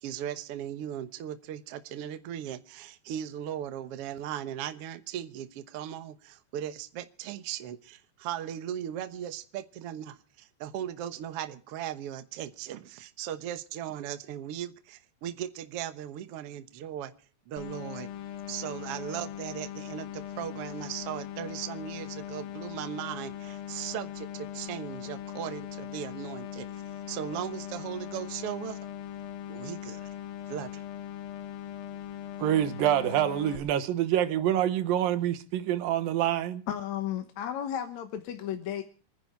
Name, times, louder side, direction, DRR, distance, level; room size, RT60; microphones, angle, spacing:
voice 1, 0.0-17.1 17.5-18.1 18.5-26.8 27.1-28.8 29.5-30.1 30.4-30.8, right 11 dB, 65° right, 1.6 m, -38 dB
sound 1, 17.6-33.6, left 10 dB, 85° left, 3.0 m, -40 dB
voice 2, 32.4-36.6, right 11 dB, 80° right, 2.8 m, -26 dB
voice 3, 36.7-38.8, left 10 dB, 65° left, 2.1 m, -33 dB
26.5 x 10.0 x 4.6 m
omnidirectional pair, 4.0 m